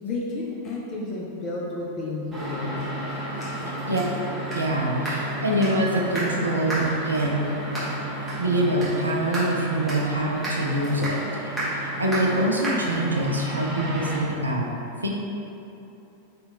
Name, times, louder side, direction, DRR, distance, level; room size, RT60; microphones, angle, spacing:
voice 1, 0.0-2.7, left 2 dB, 30° left, -4 dB, 0.4 m, -31 dB
sound 1, 2.3-14.2, equal, 10° right, 1.1 m, -31 dB
voice 2, 4.5-7.6 8.4-14.7 15.0-15.1, right 1 dB, 80° right, -1 dB, 0.3 m, -25 dB
3.3 x 2.8 x 2.5 m, 2.9 s
figure-of-eight pair, 90°, 0 cm